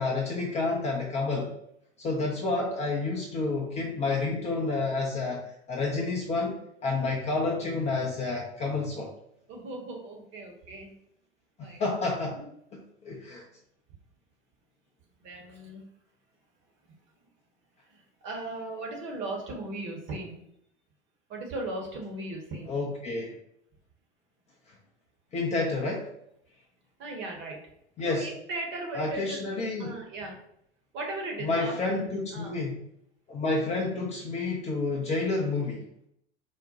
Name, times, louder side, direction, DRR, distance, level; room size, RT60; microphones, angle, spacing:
voice 1, 0.0-1.5 2.0-9.1 11.8-12.4 12.7-13.5 22.7-23.3 25.3-26.1 28.0-28.3 28.9-29.9 31.4-32.8 33.3-35.9, left 3 dB, 20° left, -2 dB, 0.4 m, -29 dB
voice 2, 9.5-10.9 11.6-11.8 12.3-12.5 15.2-15.8 17.9-20.4 21.3-22.7 27.0-27.6 28.0-30.4 30.9-32.6, right 2 dB, 35° right, 1 dB, 0.9 m, -37 dB
3.9 x 2.1 x 2.7 m, 0.73 s
figure-of-eight pair, 85°, 35 cm